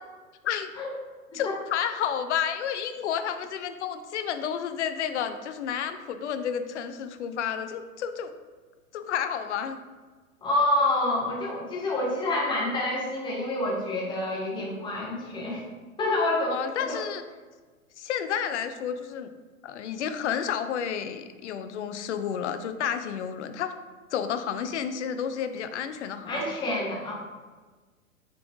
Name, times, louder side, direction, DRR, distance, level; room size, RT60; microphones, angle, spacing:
voice 1, 1.3-8.3 8.9-9.8 16.5-17.2 18.0-19.3 19.6-23.7 24.1-26.4, left 8 dB, 55° left, 9 dB, 0.5 m, -31 dB
voice 2, 10.4-15.6 16.0-16.6 16.9-17.0 26.3-27.1, left 1 dB, 10° left, -4 dB, 0.8 m, -27 dB
5.0 x 3.3 x 2.6 m, 1.4 s
figure-of-eight pair, 105°, 42 cm